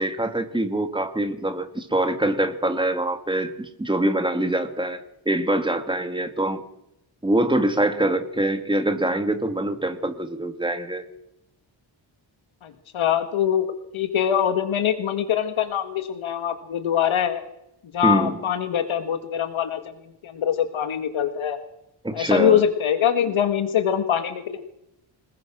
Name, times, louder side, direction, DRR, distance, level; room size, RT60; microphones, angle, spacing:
voice 1, 0.0-5.0 5.3-6.6 7.2-11.0 18.0-18.3 22.0-22.6, right 1 dB, 10° right, 8 dB, 2.1 m, -24 dB
voice 2, 12.6-17.4 17.9-19.8 20.2-21.6 22.1-24.6, left 9 dB, 90° left, 8 dB, 2.0 m, -23 dB
27.5 x 20.5 x 6.3 m, 0.81 s
wide cardioid pair, 160°, 47 cm